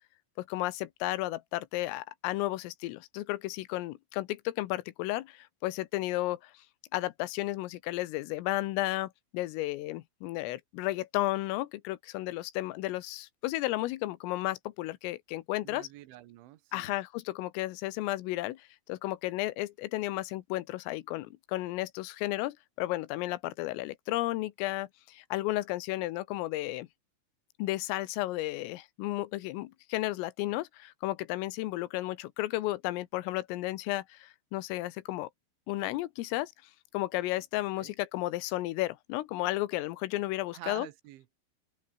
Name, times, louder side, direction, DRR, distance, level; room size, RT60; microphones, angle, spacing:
voice 1, 0.4-6.5 6.9-15.9 16.7-26.9 27.6-35.3 35.7-36.5 36.9-40.9, left 17 dB, 90° left, 3.7 m, -33 dB
voice 2, 15.6-16.9 37.8-37.9 40.5-41.3, right 15 dB, 75° right, 3.4 m, -47 dB
open air
omnidirectional pair, 5.8 m